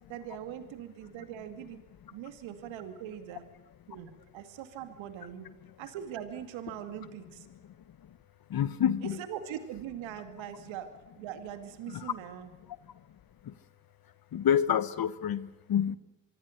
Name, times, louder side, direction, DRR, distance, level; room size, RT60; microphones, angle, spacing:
voice 1, 0.1-1.8 2.1-3.5 3.9-5.5 5.8-7.5 9.0-12.5, right 10 dB, 70° right, 9 dB, 2.5 m, -41 dB
voice 2, 8.5-9.2 11.9-12.1 13.4-13.6 14.3-16.0, left 9 dB, 45° left, 16 dB, 1.2 m, -28 dB
24.0 x 24.0 x 6.6 m, 0.98 s
hypercardioid pair, 50°, 48 cm